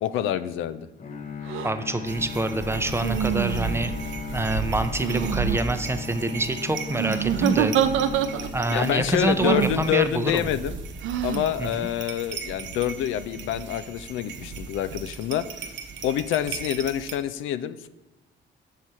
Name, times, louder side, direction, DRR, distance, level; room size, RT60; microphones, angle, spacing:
voice 1, 0.0-0.9 8.7-10.8 11.2-15.4 16.0-17.9, left 11 dB, 80° left, 14 dB, 0.4 m, -27 dB
Bowed string instrument, 1.0-9.2, left 7 dB, 40° left, 0.7 m, -37 dB
sound 1, 1.5-1.7 3.0-3.9 5.0-5.6 6.9-8.7 9.4-9.8 11.0-11.5, right 11 dB, 90° right, 0.5 m, -26 dB
voice 2, 1.6-3.9 4.3-7.7 8.5-10.5 11.6-11.7, right 2 dB, 10° right, 8 dB, 0.5 m, -26 dB
sound 2, 2.1-17.1, right 4 dB, 70° right, 0.8 m, -36 dB
6.5 x 4.3 x 4.7 m, 1.0 s
cardioid pair, 90°, 20 cm